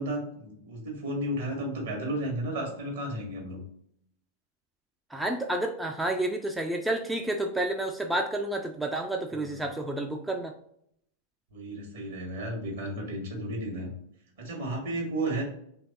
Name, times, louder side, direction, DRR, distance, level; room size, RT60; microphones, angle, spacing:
voice 1, 0.0-3.6 9.3-9.6 11.5-13.9 14.4-15.4, right 1 dB, 60° right, 0 dB, 1.4 m, -33 dB
voice 2, 5.1-10.5, right 1 dB, 5° right, 3 dB, 0.4 m, -30 dB
3.3 x 2.9 x 4.1 m, 0.70 s
figure-of-eight pair, 90°, 0 cm